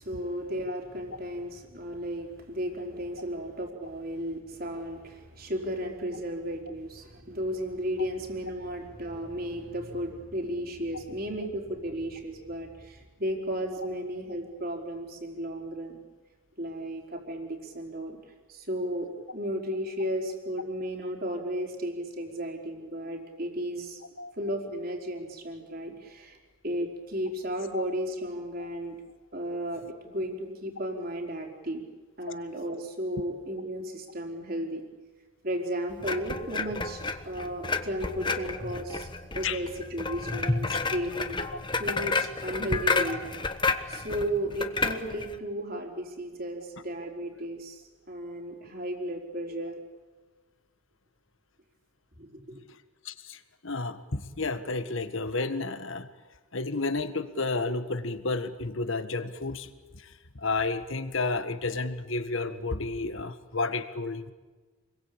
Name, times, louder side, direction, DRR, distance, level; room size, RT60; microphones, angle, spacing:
voice 1, 0.0-16.0 16.6-18.2 18.5-24.0 24.4-26.4 26.6-29.0 29.3-31.8 32.2-34.9 35.4-39.1 39.3-41.4 41.8-43.2 43.5-43.6 43.9-49.8 52.2-52.6, equal, 45° right, 2 dB, 4.6 m, -34 dB
sound 1, 36.0-45.4, left 3 dB, 20° left, 1.2 m, -31 dB
voice 2, 53.0-56.1 56.5-64.3, left 3 dB, 65° left, 10 dB, 1.8 m, -31 dB
28.5 x 22.0 x 8.8 m, 1.3 s
head